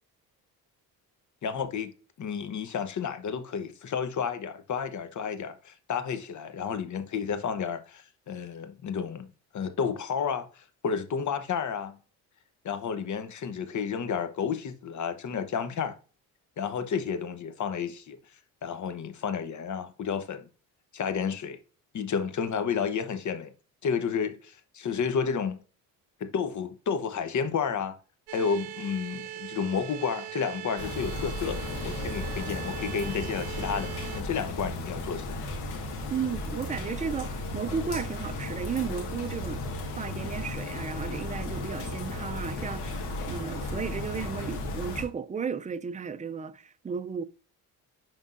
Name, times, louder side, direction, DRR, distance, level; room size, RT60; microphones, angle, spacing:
voice 1, 1.4-1.9 2.2-9.3 9.5-12.0 12.6-16.0 16.6-18.2 18.6-20.5 20.9-21.6 21.9-23.5 23.8-25.6 26.2-28.0 28.3-35.4, left 6 dB, 45° left, 1.0 m, -31 dB
sound 1, 28.3-34.2, right 14 dB, 85° right, 0.6 m, -41 dB
sound 2, 30.8-45.0, left 2 dB, 80° left, 1.7 m, -35 dB
voice 2, 36.1-39.6 40.0-47.2, right 6 dB, 20° right, 0.5 m, -34 dB
10.5 x 3.6 x 2.6 m
cardioid pair, 85°, 39 cm